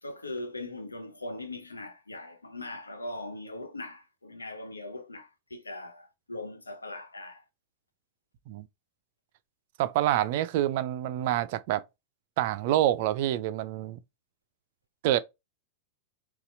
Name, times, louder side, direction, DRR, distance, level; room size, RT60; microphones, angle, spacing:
voice 1, 0.0-7.4, left 2 dB, 80° left, 0.6 m, -40 dB
voice 2, 9.8-11.8 12.4-14.0 15.0-15.2, right 13 dB, 50° right, 0.3 m, -27 dB
4.0 x 2.3 x 2.4 m
figure-of-eight pair, 95°, 0 cm